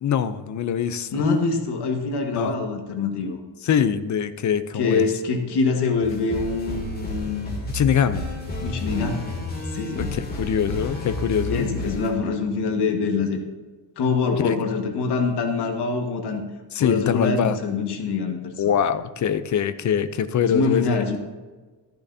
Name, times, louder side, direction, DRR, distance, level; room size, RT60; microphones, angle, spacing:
voice 1, 0.0-1.2 2.3-2.5 3.6-5.0 7.7-8.2 10.0-11.7 14.4-14.6 16.7-17.6 18.6-21.0, left 8 dB, 45° left, 12 dB, 0.6 m, -23 dB
voice 2, 1.1-3.4 4.8-7.5 8.6-9.3 9.7-10.2 11.5-13.4 14.0-16.4 16.8-18.5 20.5-21.2, left 4 dB, 70° left, 4 dB, 1.7 m, -24 dB
sound 1, 6.0-12.1, left 1 dB, 20° left, 2.6 m, -31 dB
14.0 x 10.5 x 2.8 m, 1.3 s
cardioid pair, 145°, 42 cm